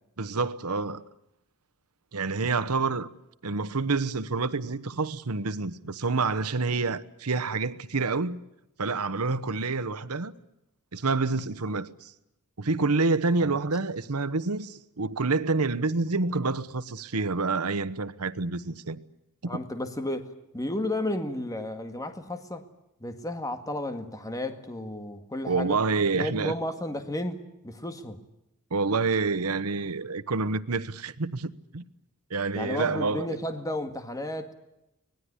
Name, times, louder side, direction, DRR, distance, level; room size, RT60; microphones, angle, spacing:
voice 1, 0.2-1.0 2.1-3.1 3.4-8.4 8.8-10.3 10.9-12.1 12.6-19.0 25.5-26.5 28.7-31.8 32.3-33.4, right 3 dB, 85° right, 1.1 m, -28 dB
voice 2, 19.5-22.7 23.0-25.8 26.1-28.2 32.5-34.5, left 1 dB, 15° left, 1.9 m, -33 dB
25.0 x 19.5 x 9.8 m
head